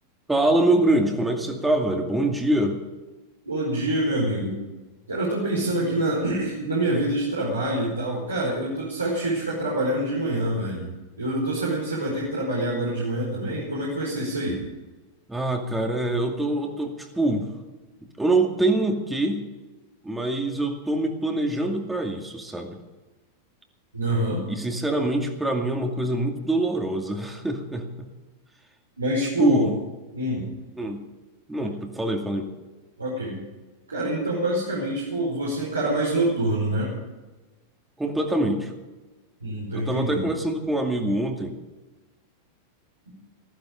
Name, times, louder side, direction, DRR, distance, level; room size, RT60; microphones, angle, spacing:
voice 1, 0.3-2.8 15.3-17.5 18.2-19.4 20.0-22.8 24.5-28.1 29.4-29.8 30.8-31.0 31.5-32.5 38.0-38.7 39.7-41.6, right 1 dB, 5° right, 3 dB, 2.3 m, -24 dB
voice 2, 3.4-4.6 5.1-10.9 11.2-14.6 23.9-24.4 29.0-29.7 30.1-30.5 33.0-33.4 33.9-36.9 39.4-40.3, right 1 dB, 80° right, -5 dB, 4.9 m, -26 dB
15.0 x 15.0 x 5.1 m, 1.2 s
figure-of-eight pair, 90°, 0 cm